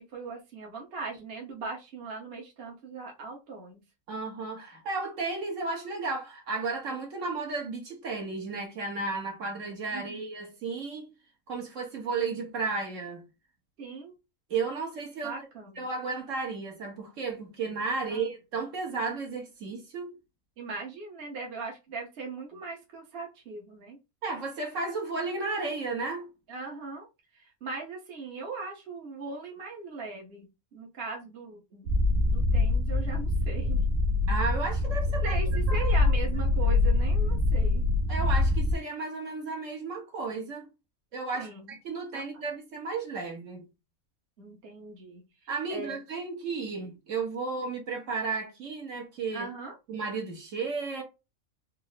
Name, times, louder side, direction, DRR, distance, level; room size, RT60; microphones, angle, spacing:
voice 1, 0.1-3.8 9.9-10.3 13.8-14.1 15.2-15.8 18.1-18.2 20.6-24.0 26.5-27.1 27.3-31.9 32.2-33.8 35.2-37.9 41.4-41.7 42.1-42.4 44.4-45.2 45.7-46.0 49.3-49.7, right 4 dB, 50° right, 1.2 m, -39 dB
voice 2, 4.1-11.1 11.5-13.2 14.5-15.4 15.8-20.1 24.2-26.3 34.3-35.3 35.7-35.9 38.1-40.6 41.1-43.7 45.5-49.5 49.9-51.0, right 4 dB, 65° right, 1.5 m, -33 dB
sound 1, 31.9-38.7, left 2 dB, 80° right, 1.2 m, -25 dB
4.1 x 2.1 x 3.9 m
omnidirectional pair, 1.4 m